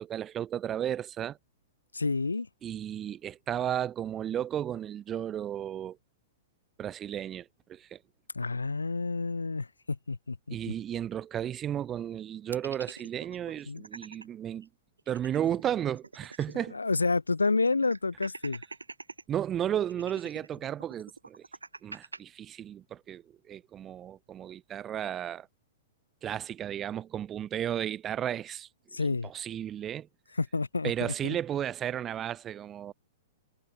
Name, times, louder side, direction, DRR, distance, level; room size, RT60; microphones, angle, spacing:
voice 1, 0.0-1.4 2.6-6.0 6.8-8.0 10.5-14.7 15.1-16.8 19.3-21.4 21.8-25.5 26.2-28.7 29.0-30.1 30.8-32.9, right 10 dB, 20° right, 1.0 m, -34 dB
voice 2, 1.9-2.5 8.3-10.6 13.7-13.8 16.7-18.6 28.9-29.3 30.4-31.3, left 3 dB, 80° left, 2.2 m, -29 dB
sound 1, 12.5-14.3 14.6-14.7 15.0-16.8 17.0-17.1 17.6-19.2 19.9-22.2, right 3 dB, 80° right, 2.3 m, -45 dB
figure-of-eight pair, 105°, 0 cm